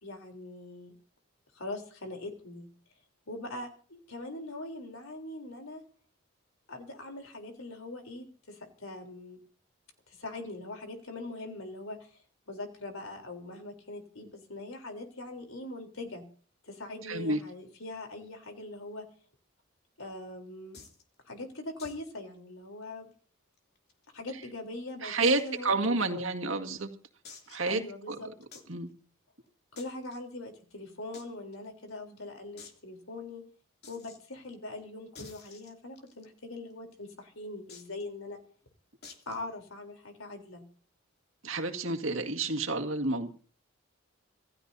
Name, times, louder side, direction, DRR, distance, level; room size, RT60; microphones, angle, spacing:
voice 1, 0.0-0.9 1.5-2.7 3.3-5.8 6.7-9.4 10.1-12.1 12.5-16.2 16.6-19.1 20.0-20.8 21.3-23.1 24.1-26.3 27.7-28.3 29.7-33.4 33.9-38.4 39.3-40.6, left 2 dB, 80° left, 4 dB, 3.7 m, -42 dB
voice 2, 17.0-17.4 24.3-24.4 25.0-26.9 27.5-27.8 28.1-28.2 28.7-28.9 41.4-43.3, right 3 dB, 75° right, 4 dB, 2.0 m, -29 dB
sound 1, 20.7-21.0 21.8-22.1 22.3-22.4 22.8-22.9 23.6-24.4 25.2-25.6 26.1-26.2 27.2-27.7 28.5-28.7 29.8-30.2 31.1-31.3 31.5-31.6 31.9-32.0 32.6-32.8 33.8-34.2 35.1-36.2 37.7-38.0 39.0-39.4, left 4 dB, 50° left, 2.9 m, -50 dB
27.0 x 15.5 x 2.8 m, 0.41 s
head